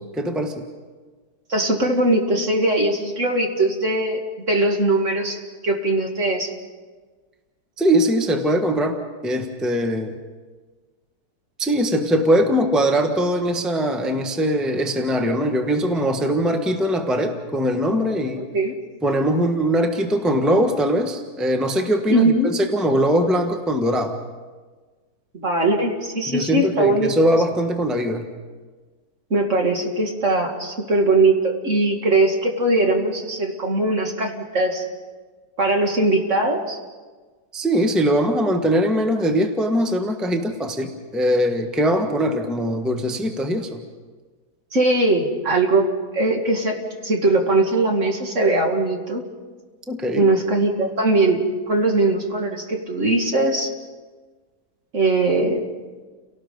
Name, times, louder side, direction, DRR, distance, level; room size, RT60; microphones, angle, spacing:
voice 1, 0.2-0.6 7.8-10.2 11.6-18.5 19.0-24.2 26.3-28.3 37.5-43.8 49.9-50.3, equal, ahead, 4 dB, 1.2 m, -21 dB
voice 2, 1.5-4.2 4.5-6.5 18.4-18.7 22.1-22.5 25.3-27.1 29.3-34.8 35.6-36.8 44.7-45.9 46.1-49.2 50.1-51.4 51.7-53.7 54.9-55.6, right 2 dB, 45° right, 2 dB, 2.3 m, -20 dB
30.0 x 18.0 x 5.4 m, 1.4 s
omnidirectional pair, 1.8 m